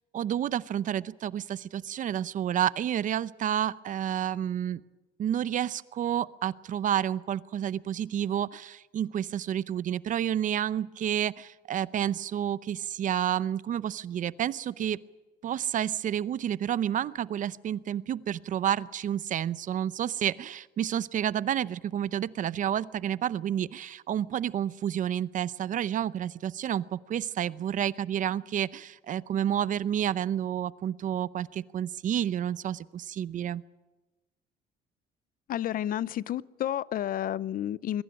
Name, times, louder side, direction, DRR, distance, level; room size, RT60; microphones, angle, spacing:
voice 1, 0.1-4.8 5.2-15.0 15.4-33.6, right 10 dB, 50° right, 0.7 m, -30 dB
voice 2, 35.5-38.0, left 11 dB, 55° left, 0.6 m, -31 dB
22.5 x 14.5 x 10.0 m
cardioid pair, 110°, 17 cm